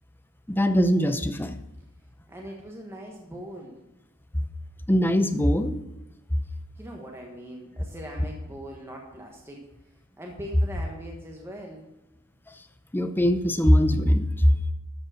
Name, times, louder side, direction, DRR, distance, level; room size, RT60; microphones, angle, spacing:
voice 1, 0.5-1.6 4.9-5.8 12.9-14.3, equal, 10° left, 8 dB, 0.6 m, -21 dB
voice 2, 2.3-3.8 6.8-9.7 10.2-11.9, equal, 10° right, -1 dB, 1.2 m, -41 dB
13.0 x 5.3 x 6.2 m, 0.99 s
head